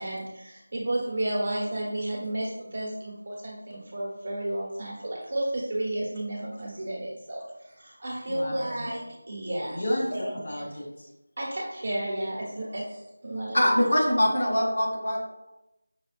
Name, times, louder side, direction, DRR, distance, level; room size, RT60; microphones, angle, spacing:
voice 1, 0.0-7.4 7.8-9.8 10.1-10.4 11.4-13.6, right 1 dB, 35° right, -4 dB, 1.2 m, -32 dB
voice 2, 8.3-8.9 9.7-11.1, left 1 dB, 40° left, -3 dB, 1.0 m, -33 dB
voice 3, 13.5-15.2, equal, 60° left, -4 dB, 1.5 m, -23 dB
5.7 x 2.7 x 2.5 m, 0.93 s
figure-of-eight pair, 175°, 0 cm